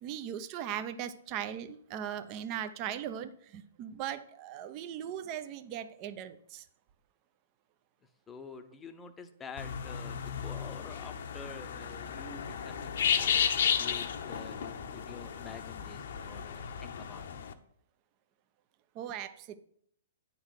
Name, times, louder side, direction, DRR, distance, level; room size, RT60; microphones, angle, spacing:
voice 1, 0.0-6.6 18.9-19.6, right 10 dB, 35° right, 11 dB, 0.7 m, -39 dB
voice 2, 8.3-13.5 13.8-17.4, left 5 dB, 15° left, 7 dB, 0.8 m, -48 dB
sound 1, 9.6-17.5, left 7 dB, 65° left, 0.8 m, -33 dB
9.4 x 3.9 x 6.5 m, 0.66 s
hypercardioid pair, 140°, 0 cm